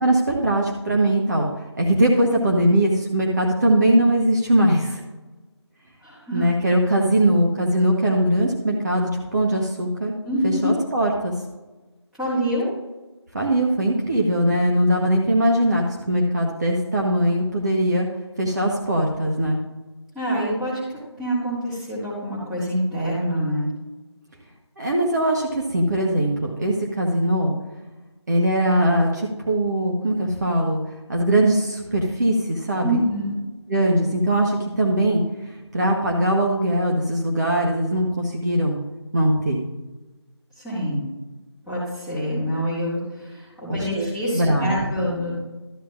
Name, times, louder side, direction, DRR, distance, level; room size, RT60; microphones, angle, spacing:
voice 1, 0.0-5.0 6.3-10.1 10.4-11.3 13.3-18.1 18.4-19.6 24.8-27.5 28.3-30.8 31.1-32.9 33.7-35.2 35.7-38.8 39.1-39.6 43.7-44.1 44.3-44.8, right 1 dB, 40° right, -1 dB, 1.0 m, -21 dB
voice 2, 6.0-6.4 10.2-10.8 12.2-12.7 20.1-20.8 21.2-23.7 32.8-33.4 40.6-41.0 41.7-45.4, equal, 5° right, -11 dB, 2.0 m, -26 dB
12.5 x 8.6 x 2.5 m, 1.1 s
figure-of-eight pair, 160°, 15 cm